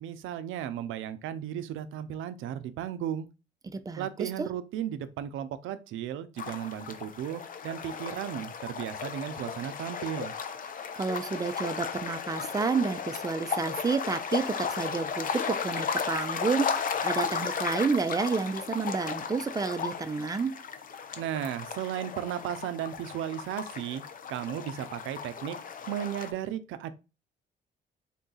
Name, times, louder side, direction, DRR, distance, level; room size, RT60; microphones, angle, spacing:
voice 1, 0.0-3.3 4.0-10.3 21.2-24.0 24.3-25.6 25.9-26.9, right 10 dB, 80° right, 0.5 m, -35 dB
voice 2, 3.6-4.5 11.0-20.5, right 5 dB, 20° right, 0.4 m, -30 dB
sound 1, 6.4-26.3, left 6 dB, 45° left, 0.5 m, -35 dB
3.7 x 2.3 x 3.9 m
cardioid pair, 90°, 20 cm